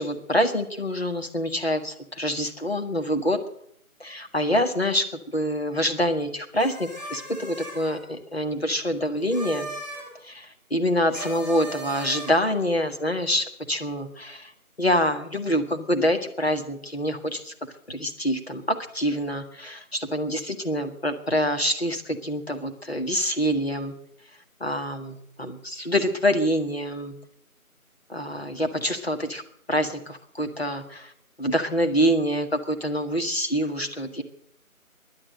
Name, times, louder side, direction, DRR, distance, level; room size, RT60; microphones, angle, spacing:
voice 1, 0.0-3.4 4.0-9.7 10.2-14.5 14.8-23.9 24.6-27.1 28.1-29.4 29.7-31.1 31.4-34.2, equal, 45° left, 6 dB, 1.7 m, -26 dB
sound 1, 6.6-8.0 9.2-10.1 11.1-12.5, right 1 dB, 15° left, 5.0 m, -38 dB
15.5 x 11.5 x 7.8 m, 0.70 s
figure-of-eight pair, 175°, 43 cm